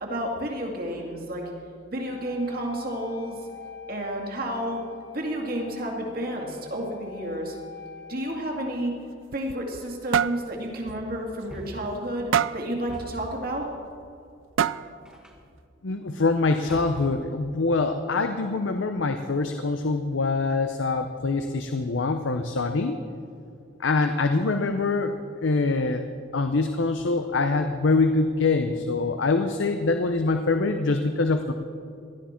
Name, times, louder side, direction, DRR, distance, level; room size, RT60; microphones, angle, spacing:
voice 1, 0.0-1.4 1.9-3.4 3.9-4.8 5.1-7.6 8.1-8.9 9.3-13.7, right 1 dB, 50° right, 0 dB, 2.3 m, -31 dB
Wind instrument woodwind instrument, 1.9-8.9, left 6 dB, 55° left, 3.8 m, -45 dB
sound 1, 9.1-9.9 10.1-10.4 10.9-11.0 11.4-11.5 12.3-12.7 13.8-13.9 14.6-15.0, right 8 dB, 80° right, 0.4 m, -25 dB
sound 2, 10.9-12.1 12.9-13.4 15.1-15.6 16.7-17.3, equal, 5° right, 1.3 m, -43 dB
voice 2, 15.8-23.0 23.8-26.0 26.3-31.5, left 3 dB, 75° left, 7 dB, 0.7 m, -24 dB
17.5 x 12.5 x 4.4 m, 2.5 s
head